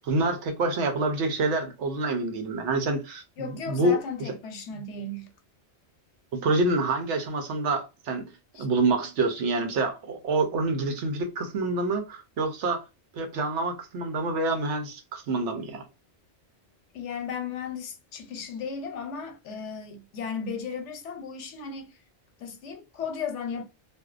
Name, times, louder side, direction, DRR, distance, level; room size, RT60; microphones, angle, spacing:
voice 1, 0.0-4.0 6.3-8.3 8.6-12.8 13.1-15.8, right 2 dB, 80° right, 1.0 m, -27 dB
voice 2, 3.4-5.3 8.5-8.7 16.9-22.0 22.4-23.6, left 5 dB, 90° left, 1.0 m, -35 dB
2.6 x 2.1 x 2.3 m
omnidirectional pair, 1.2 m